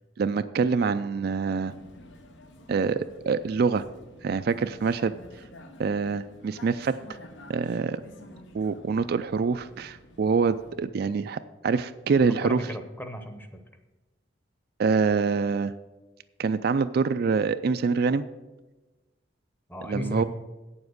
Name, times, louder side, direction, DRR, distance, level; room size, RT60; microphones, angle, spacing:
voice 1, 0.2-1.7 2.7-3.8 4.2-5.1 5.8-6.9 7.5-8.0 8.5-12.6 14.8-15.7 16.4-18.2 19.9-20.2, right 5 dB, 55° right, 11 dB, 0.3 m, -25 dB
Vehicle, 1.6-10.8, left 1 dB, 80° left, 0.9 m, -50 dB
voice 2, 12.2-13.5 19.7-20.2, equal, 10° left, 7 dB, 0.8 m, -35 dB
8.6 x 7.2 x 6.4 m, 1.1 s
head